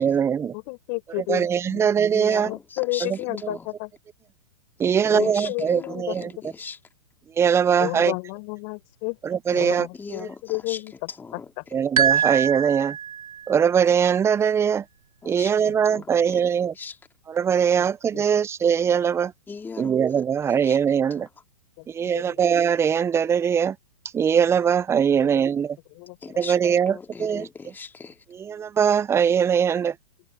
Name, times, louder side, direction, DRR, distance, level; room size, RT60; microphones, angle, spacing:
voice 1, 0.0-0.5 1.3-2.5 3.0-3.5 4.8-6.3 7.4-8.1 9.2-9.9 10.2-10.3 11.7-13.0 13.5-14.8 15.2-16.7 17.3-19.3 19.8-21.3 21.9-23.8 24.1-25.8 26.4-27.5 28.3-29.9, right 7 dB, 15° right, 0.8 m, -21 dB
voice 2, 0.5-1.9 2.4-3.9 5.1-6.4 7.8-9.2 9.5-11.6 15.7-16.0 17.7-17.8 18.1-18.2 21.8-22.4 25.2-25.3 25.9-26.4, left 39 dB, 40° left, 5.8 m, -32 dB
voice 3, 2.1-3.1 3.5-3.7 4.8-6.8 9.5-10.8 11.1-11.5 12.1-12.2 15.2-15.5 15.9-16.5 16.7-17.0 19.5-20.0 20.5-20.8 21.2-21.3 26.2-28.2, left 5 dB, 10° left, 2.4 m, -39 dB
sound 1, 12.0-13.5, right 8 dB, 75° right, 2.4 m, -23 dB
hypercardioid pair, 115°, 18 cm